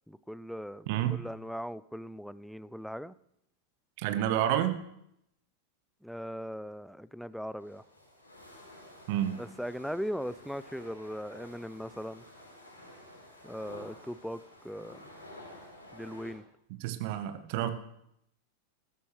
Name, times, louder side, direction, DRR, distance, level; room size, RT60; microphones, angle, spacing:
voice 1, 0.1-3.1 6.0-7.8 9.4-12.2 13.4-15.0 15.9-16.4, equal, ahead, 18 dB, 0.3 m, -39 dB
voice 2, 0.9-1.2 4.0-4.7 9.1-9.4 16.8-17.7, right 11 dB, 50° right, 10 dB, 1.0 m, -29 dB
sound 1, 7.3-16.3, left 1 dB, 80° left, 4.8 m, -51 dB
14.0 x 13.0 x 3.2 m, 0.77 s
figure-of-eight pair, 90°, 0 cm